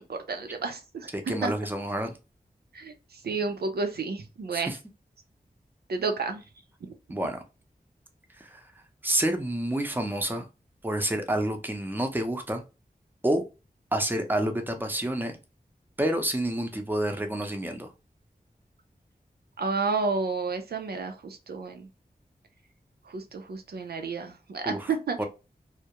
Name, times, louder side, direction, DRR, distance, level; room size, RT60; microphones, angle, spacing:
voice 1, 0.0-1.1 1.4-1.5 2.7-4.7 5.9-6.4 6.8-6.9 19.6-21.9 23.1-25.2, right 4 dB, 90° right, 0.5 m, -31 dB
voice 2, 1.1-2.2 4.5-4.8 7.1-7.4 8.4-8.6 9.0-10.4 10.8-12.6 13.2-13.4 13.9-15.4 16.0-17.9 24.7-24.9 25.2-25.3, right 1 dB, 10° right, 0.5 m, -28 dB
2.3 x 2.1 x 2.8 m
wide cardioid pair, 70°, 16 cm